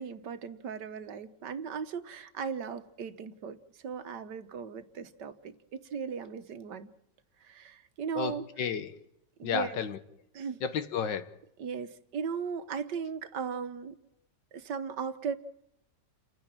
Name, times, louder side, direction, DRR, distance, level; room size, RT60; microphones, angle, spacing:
voice 1, 0.0-6.9 7.5-8.5 9.4-9.8 10.3-10.6 11.6-14.0 14.5-15.4, right 6 dB, 75° right, 1.8 m, -37 dB
voice 2, 8.2-9.0 9.4-10.0 10.6-11.3, left 7 dB, 90° left, 1.9 m, -32 dB
29.5 x 10.0 x 8.9 m
omnidirectional pair, 1.9 m